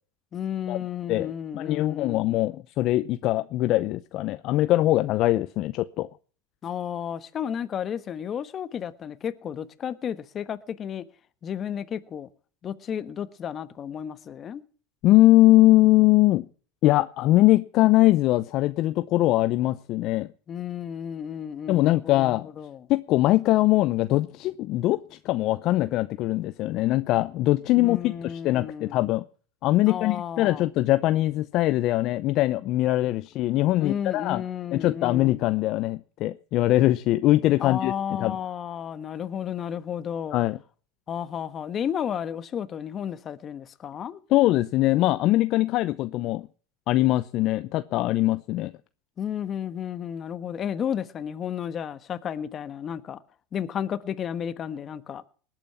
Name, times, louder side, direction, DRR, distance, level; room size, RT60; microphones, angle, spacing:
voice 1, 0.3-2.2 6.6-11.0 11.4-12.3 12.6-14.6 20.5-22.9 27.8-29.0 29.9-30.6 33.8-35.4 37.6-40.4 41.1-44.2 49.2-53.2 53.5-55.2, left 8 dB, 35° left, 1.3 m, -32 dB
voice 2, 1.5-6.1 15.0-16.5 16.8-20.3 21.7-22.5 22.9-29.2 29.6-34.4 34.7-37.9 38.2-38.4 40.3-40.6 44.3-46.5 46.9-48.7, left 16 dB, 50° left, 0.6 m, -22 dB
19.5 x 9.0 x 5.9 m
supercardioid pair, 110°, 0 cm